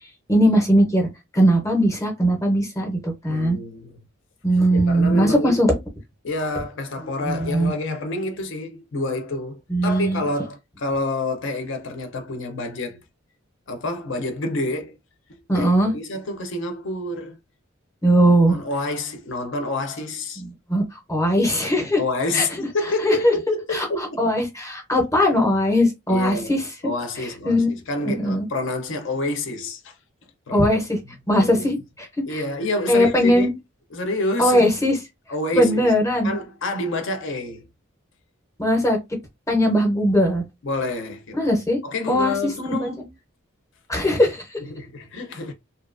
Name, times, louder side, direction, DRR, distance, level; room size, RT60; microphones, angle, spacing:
voice 1, 0.3-1.1 1.3-3.6 4.4-5.8 7.2-7.7 9.7-10.2 15.5-15.9 18.0-18.6 20.4-20.8 21.1-22.0 22.3-22.7 23.0-23.3 23.7-26.6 27.4-28.5 30.5-31.0 31.3-31.8 32.3-32.4 32.9-33.5 34.4-35.0 35.5-36.3 38.6-39.0 39.5-40.4 41.4-41.8 42.1-42.3 42.7-42.9 43.9-44.6, equal, 15° left, 0.6 m, -19 dB
voice 2, 3.3-4.0 4.7-5.8 6.2-13.0 13.7-15.0 15.3-17.4 18.2-20.4 22.0-24.2 26.1-29.9 30.5-30.7 31.1-31.7 32.3-33.5 33.9-34.7 35.3-35.9 36.2-37.7 40.6-41.4 41.8-43.1 44.6-45.5, left 2 dB, 60° left, 0.6 m, -28 dB
2.7 x 2.3 x 2.4 m
head